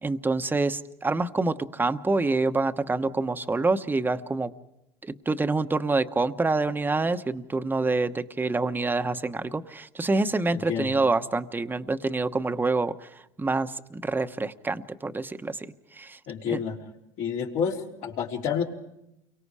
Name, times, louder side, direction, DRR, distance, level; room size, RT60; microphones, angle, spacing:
voice 1, 0.0-4.5 5.0-12.9 13.4-15.7 16.0-16.2 16.5-16.6, right 3 dB, 15° right, 9 dB, 1.1 m, -26 dB
voice 2, 10.5-10.9 16.3-16.8 17.2-18.6, left 7 dB, 65° left, -1 dB, 3.7 m, -29 dB
29.5 x 23.5 x 4.9 m, 0.85 s
supercardioid pair, 95°, 13 cm